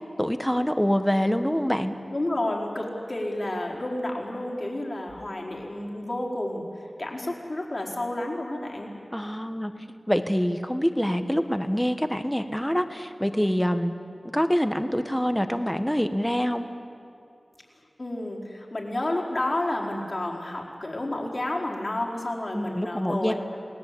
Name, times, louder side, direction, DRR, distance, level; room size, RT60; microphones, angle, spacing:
voice 1, 0.2-1.9 9.1-9.7 10.1-13.9 14.3-16.6 22.5-23.3, equal, 5° left, 8 dB, 1.4 m, -25 dB
voice 2, 2.1-6.6 7.0-8.9 18.0-23.3, left 1 dB, 50° left, -2 dB, 4.6 m, -30 dB
28.5 x 19.5 x 8.5 m, 2.5 s
wide cardioid pair, 70°, 0 cm